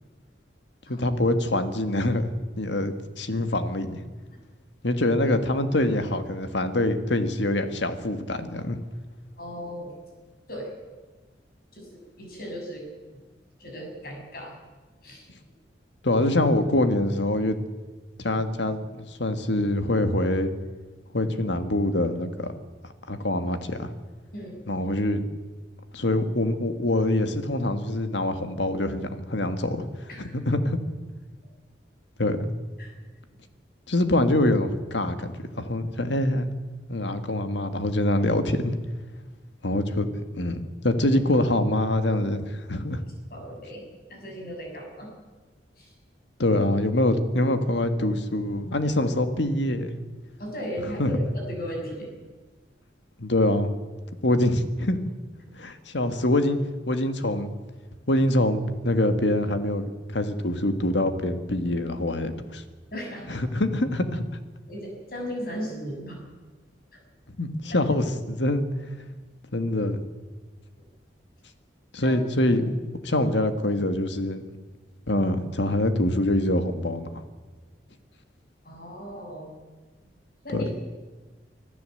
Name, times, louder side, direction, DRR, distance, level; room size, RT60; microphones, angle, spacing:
voice 1, 0.9-2.3 2.6-4.0 4.8-8.8 16.0-17.6 18.2-20.5 21.1-22.5 23.1-23.9 24.7-25.2 25.9-29.9 30.3-30.8 32.2-32.5 33.9-36.5 36.9-38.7 39.6-40.1 40.4-43.0 46.4-49.9 51.0-51.1 53.2-53.7 54.2-55.0 55.5-56.6 56.9-57.5 58.1-62.6 63.3-64.2 67.4-68.7 69.5-70.0 71.9-72.8 73.0-74.4 75.1-77.1 80.5-80.6, left 1 dB, 75° left, 8 dB, 1.7 m, -24 dB
voice 2, 9.4-9.9 10.5-10.7 11.7-12.8 13.6-14.5 15.0-15.3 24.3-24.8 30.1-30.3 32.8-32.9 43.0-45.1 45.8-45.9 50.4-52.1 55.4-55.5 62.9-63.4 64.7-66.2 66.9-67.0 67.7-67.8 72.0-72.1 78.6-79.5 80.4-80.7, equal, 50° left, 1 dB, 6.5 m, -36 dB
25.0 x 13.5 x 7.8 m, 1.3 s
head